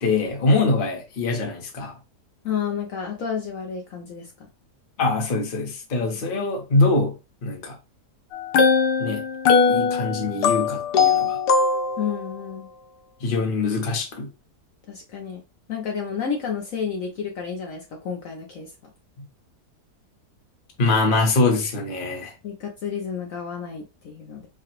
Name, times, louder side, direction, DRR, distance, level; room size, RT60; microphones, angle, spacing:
voice 1, 0.0-1.9 5.0-7.1 7.4-7.8 9.0-9.2 9.7-11.4 13.2-14.3 20.8-22.3, left 3 dB, 35° left, 1.0 m, -23 dB
voice 2, 2.4-4.3 12.0-12.7 14.9-15.4 15.7-18.7 22.4-24.5, left 7 dB, 60° left, 1.1 m, -30 dB
sound 1, 8.3-12.3, left 5 dB, 80° left, 1.2 m, -20 dB
4.8 x 2.4 x 3.0 m
omnidirectional pair, 1.7 m